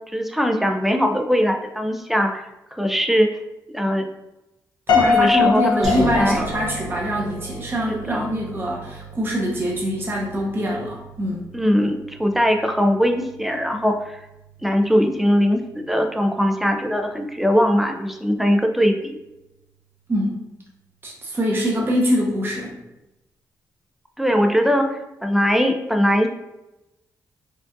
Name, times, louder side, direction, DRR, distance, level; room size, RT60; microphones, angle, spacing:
voice 1, 0.1-3.3 3.7-4.0 5.1-6.5 8.1-8.3 11.5-14.3 14.6-19.2 24.2-26.3, equal, 5° right, 4 dB, 0.4 m, -21 dB
Piano, 4.9-7.1, left 6 dB, 80° left, 0.7 m, -21 dB
voice 2, 4.9-11.5 20.1-20.4 21.0-22.8, equal, 30° right, -3 dB, 0.8 m, -24 dB
sound 1, 5.8-18.9, right 1 dB, 50° right, 1.1 m, -36 dB
4.5 x 2.4 x 2.6 m, 0.95 s
cardioid pair, 80°, 7 cm